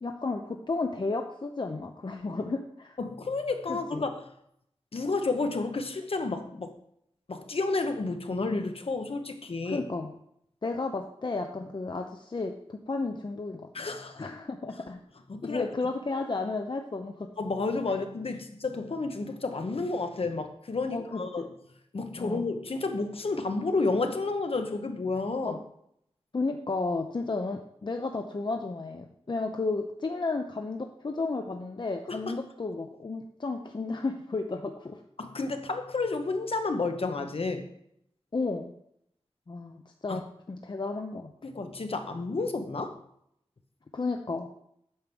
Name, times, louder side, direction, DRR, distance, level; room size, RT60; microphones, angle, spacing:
voice 1, 0.0-3.0 3.7-4.0 9.6-10.1 10.6-13.7 14.2-15.0 15.4-17.3 20.9-21.5 22.2-22.5 25.4-25.5 26.3-35.0 38.3-38.7 39.5-40.2 40.5-41.3 43.9-44.5, left 3 dB, 45° left, 4 dB, 0.8 m, -33 dB
voice 2, 3.0-4.2 4.9-6.7 7.3-9.8 13.7-14.2 15.3-15.7 17.4-21.5 21.9-25.6 32.1-32.3 35.2-37.6 40.1-40.2 41.4-43.0, left 3 dB, 65° left, 6 dB, 1.2 m, -31 dB
8.8 x 5.2 x 6.1 m, 0.73 s
wide cardioid pair, 70°, 11 cm